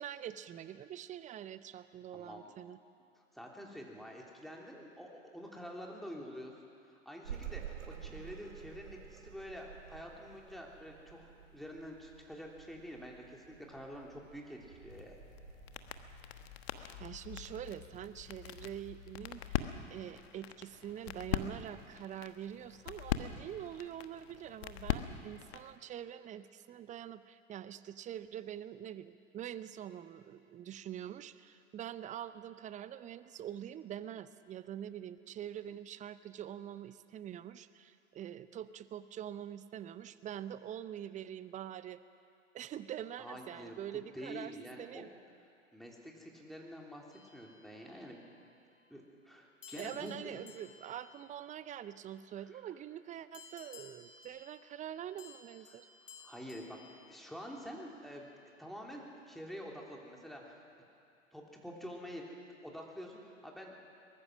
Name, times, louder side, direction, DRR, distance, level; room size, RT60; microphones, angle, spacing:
voice 1, 0.0-2.8 16.8-42.0 42.5-45.1 49.8-55.9, right 10 dB, 20° right, 14 dB, 0.7 m, -45 dB
voice 2, 2.1-2.5 3.3-6.5 6.8-15.2 43.2-43.8 44.1-45.1 45.7-48.2 48.9-50.4 52.5-52.6 56.2-56.8 57.1-60.8 61.3-63.7, equal, ahead, -1 dB, 3.2 m, -47 dB
sound 1, 7.2-16.6, right 9 dB, 75° right, 2.4 m, -50 dB
sound 2, 14.9-25.8, left 11 dB, 55° left, 1.2 m, -42 dB
sound 3, 47.1-48.3 49.6-52.3 53.3-57.9, left 5 dB, 80° left, 2.3 m, -57 dB
23.0 x 20.0 x 6.2 m, 2.5 s
figure-of-eight pair, 95°, 37 cm